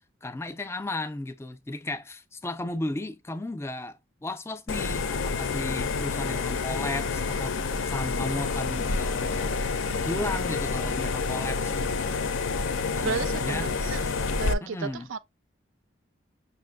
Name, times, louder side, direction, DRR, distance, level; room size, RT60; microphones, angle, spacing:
voice 1, 0.2-9.6 10.0-12.3 12.6-13.7 14.6-15.1, left 2 dB, 15° left, 0.3 m, -35 dB
sound 1, 4.7-14.5, left 4 dB, 75° left, 0.4 m, -28 dB
voice 2, 13.0-14.0 14.4-15.2, right 5 dB, 80° right, 0.4 m, -32 dB
6.2 x 2.5 x 2.3 m
head